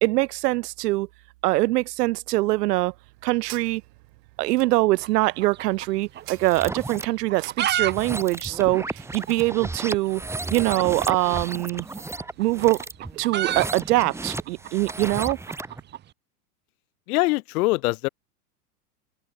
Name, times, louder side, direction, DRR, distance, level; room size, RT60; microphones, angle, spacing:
voice 1, 0.0-1.1 1.4-2.9 3.2-3.8 4.4-8.8 9.1-10.2 10.5-11.9 12.4-12.8 13.1-15.4, right 19 dB, 75° right, 0.6 m, -23 dB
sound 1, 2.6-9.2, right 30 dB, 45° right, 1.2 m, -49 dB
sound 2, 5.0-6.3 6.6-6.7 7.2-7.9 8.2-8.3 8.5-8.6 9.2-9.3 10.5-10.7 11.8-16.0, right 12 dB, 20° right, 0.7 m, -30 dB
sound 3, 6.3-7.1 7.7-15.8, right 2 dB, 5° right, 1.2 m, -34 dB
voice 2, 17.1-18.1, left 21 dB, 65° left, 0.9 m, -23 dB
hypercardioid pair, 110°, 48 cm